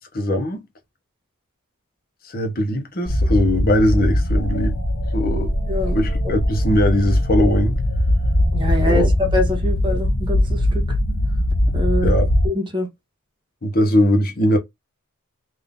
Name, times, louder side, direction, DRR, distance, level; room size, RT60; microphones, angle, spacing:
voice 1, 0.1-0.6 2.2-4.8 5.1-5.5 5.9-7.8 8.8-9.1 12.0-12.3 13.6-14.6, left 1 dB, 45° left, 1.0 m, -20 dB
sound 1, 3.1-12.5, left 1 dB, 80° left, 1.7 m, -20 dB
voice 2, 5.7-6.0 8.5-10.9 11.7-12.2 12.4-12.9, left 2 dB, 20° right, 1.4 m, -24 dB
3.7 x 2.7 x 3.7 m
head